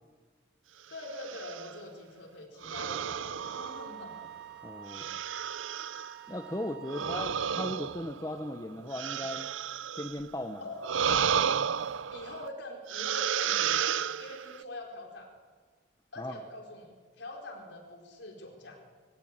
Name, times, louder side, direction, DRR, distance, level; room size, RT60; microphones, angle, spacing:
voice 1, 0.9-4.1 6.9-7.2 10.6-11.3 12.1-15.3 16.1-16.9 17.2-18.8, left 1 dB, 70° left, 1 dB, 4.3 m, -44 dB
sound 1, 1.0-1.7 2.6-4.3 4.9-6.2 6.9-10.2 10.8-12.5 12.9-14.6, right 8 dB, 85° right, 0.5 m, -32 dB
Wind instrument woodwind instrument, 3.4-7.6, right 9 dB, 55° right, 1.6 m, -47 dB
voice 2, 4.6-5.2 6.3-9.5 10.0-10.6 16.2-16.4, left 1 dB, 15° left, 6 dB, 0.8 m, -37 dB
23.5 x 15.0 x 8.8 m, 1.5 s
head